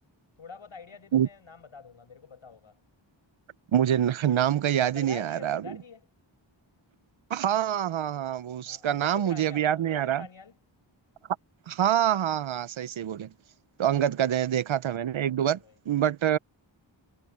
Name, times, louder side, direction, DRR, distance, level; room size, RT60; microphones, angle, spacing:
voice 1, 0.4-2.8 4.9-6.1 8.6-10.5 14.2-14.5 15.5-15.8, left 5 dB, 90° left, 5.5 m, -46 dB
voice 2, 3.7-5.8 7.3-10.3 11.7-13.3 13.8-15.6 15.9-16.4, right 10 dB, 80° right, 0.7 m, -26 dB
wide cardioid pair, 90°, 46 cm